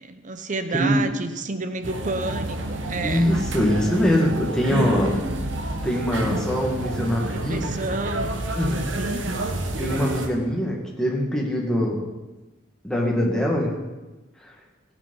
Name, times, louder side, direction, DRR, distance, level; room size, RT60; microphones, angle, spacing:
voice 1, 0.0-3.3 7.3-8.4 8.7-9.3, right 3 dB, 40° right, 9 dB, 0.8 m, -30 dB
voice 2, 0.7-1.0 3.0-5.2 5.8-7.6 8.5-8.8 9.8-12.0 12.8-13.8 14.4-14.5, equal, 5° left, -2 dB, 2.1 m, -23 dB
sound 1, 1.8-10.3, right 1 dB, 75° right, 1.4 m, -29 dB
15.5 x 8.3 x 5.6 m, 1.1 s
head